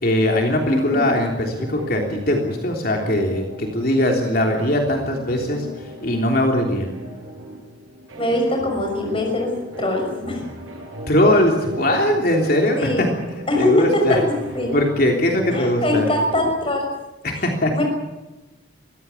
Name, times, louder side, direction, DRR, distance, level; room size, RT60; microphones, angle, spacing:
voice 1, 0.0-5.7 6.0-6.9 11.1-13.1 13.5-14.2 14.7-16.1 17.2-17.7, left 1 dB, 50° left, 1 dB, 3.3 m, -20 dB
voice 2, 0.7-1.1 8.2-9.5 9.8-10.4 12.8-13.0 13.5-14.2 14.5-14.7 15.5-16.9 17.4-17.5 17.7-17.8, left 1 dB, 25° left, 2 dB, 6.1 m, -22 dB
sound 1, 1.5-16.5, equal, 90° right, 6.7 m, -36 dB
24.0 x 17.0 x 8.4 m, 1.1 s
head